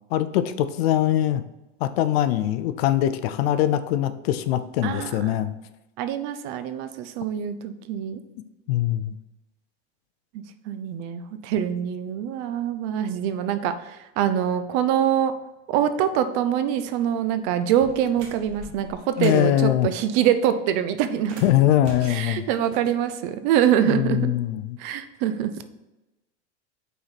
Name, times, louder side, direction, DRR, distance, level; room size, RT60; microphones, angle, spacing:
voice 1, 0.1-1.4 1.8-5.5 8.7-9.2 19.2-19.9 21.4-22.4 23.9-24.8, left 12 dB, 60° left, 12 dB, 0.6 m, -22 dB
voice 2, 4.8-5.3 6.0-8.2 10.3-15.3 15.7-21.3 22.1-24.3 24.8-25.5, right 9 dB, 45° right, 10 dB, 0.6 m, -24 dB
sound 1, 16.9-17.1 17.7-19.5 21.2-23.2, right 3 dB, 70° right, 1.8 m, -42 dB
5.6 x 4.2 x 5.9 m, 0.99 s
supercardioid pair, 145°, 35 cm